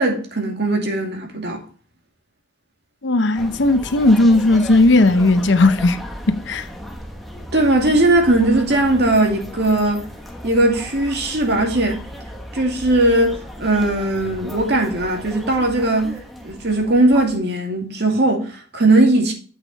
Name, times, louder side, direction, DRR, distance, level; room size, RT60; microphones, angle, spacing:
voice 1, 0.0-1.6 7.5-10.0 10.4-12.0 12.5-19.3, right 2 dB, 60° right, 2.3 m, -18 dB
voice 2, 3.0-6.0 6.3-6.7, left 2 dB, 70° left, 0.7 m, -15 dB
sound 1, 3.4-17.4, equal, ahead, 1.3 m, -36 dB
8.2 x 6.3 x 4.0 m
head